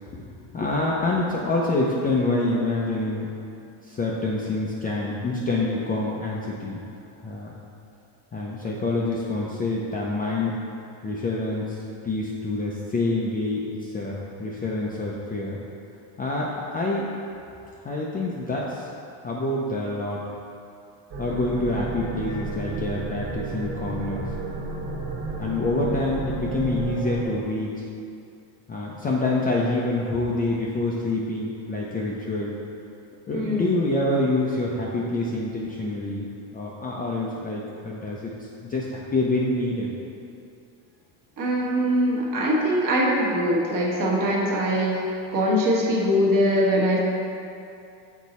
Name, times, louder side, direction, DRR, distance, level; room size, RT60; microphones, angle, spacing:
voice 1, 0.1-3.3 3.8-6.8 7.2-7.5 8.3-10.6 11.0-15.6 16.2-17.1 17.8-18.9 19.2-20.2 21.2-24.2 25.4-27.8 28.7-32.5 33.3-36.3 36.5-38.3 38.6-39.9, left 2 dB, 20° left, -4 dB, 0.4 m, -26 dB
sound 1, 21.1-27.2, right 3 dB, 60° right, 1.4 m, -32 dB
voice 2, 33.3-33.7 41.4-47.0, equal, 40° right, -3 dB, 1.2 m, -22 dB
6.4 x 4.0 x 4.1 m, 2.6 s
cardioid pair, 125°, 47 cm